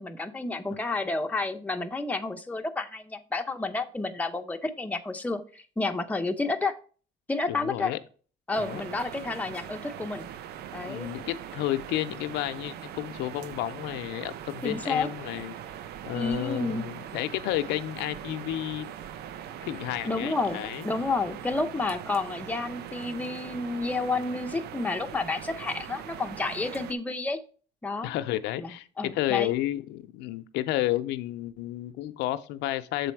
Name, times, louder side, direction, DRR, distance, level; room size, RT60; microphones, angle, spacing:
voice 1, 0.0-6.8 7.3-7.9 8.5-10.3 10.7-11.1 14.6-15.1 16.1-16.9 20.0-27.4 27.8-28.1 28.6-29.5, left 3 dB, 10° left, 4 dB, 0.7 m, -30 dB
voice 2, 7.5-8.0 8.6-8.8 10.8-15.6 16.0-18.9 19.6-20.9 28.0-33.1, left 14 dB, 90° left, 11 dB, 0.5 m, -31 dB
sound 1, 8.5-26.9, right 10 dB, 75° right, 0.6 m, -41 dB
6.8 x 4.1 x 4.5 m, 0.39 s
cardioid pair, 110°, 17 cm